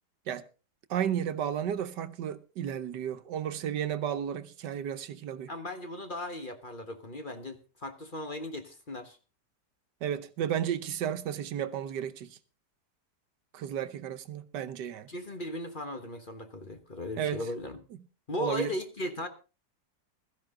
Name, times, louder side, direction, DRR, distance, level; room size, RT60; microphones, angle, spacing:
voice 1, 0.9-5.5 10.0-12.4 13.5-15.1 17.2-17.4 18.4-18.7, right 9 dB, 85° right, 1.6 m, -33 dB
voice 2, 5.5-9.2 15.1-17.8 18.3-19.3, left 1 dB, 35° left, 1.3 m, -37 dB
16.5 x 13.5 x 3.7 m
omnidirectional pair, 1.8 m